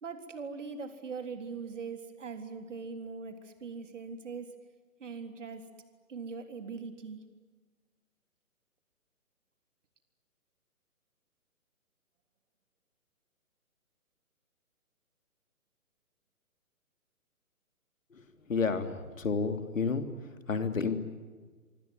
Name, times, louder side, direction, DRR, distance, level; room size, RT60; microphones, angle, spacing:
voice 1, 0.0-4.5 5.0-5.6 6.1-7.2, right 5 dB, 55° right, 7 dB, 3.7 m, -41 dB
voice 2, 18.5-20.1 20.5-21.0, left 5 dB, 60° left, 8 dB, 3.2 m, -30 dB
25.5 x 24.5 x 9.5 m, 1.4 s
figure-of-eight pair, 135°, 44 cm